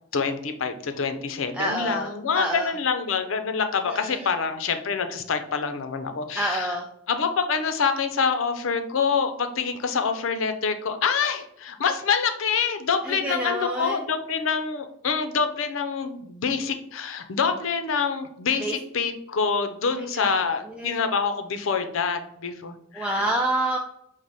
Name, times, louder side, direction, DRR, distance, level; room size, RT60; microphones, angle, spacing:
voice 1, 0.1-6.7 7.1-23.2, left 5 dB, 80° left, 8 dB, 0.5 m, -26 dB
voice 2, 1.5-2.7 3.9-4.3 6.3-6.9 13.0-14.0 18.6-18.8 20.1-21.0 22.9-23.8, right 1 dB, 5° right, -1 dB, 0.3 m, -28 dB
4.7 x 2.1 x 4.0 m, 0.75 s
head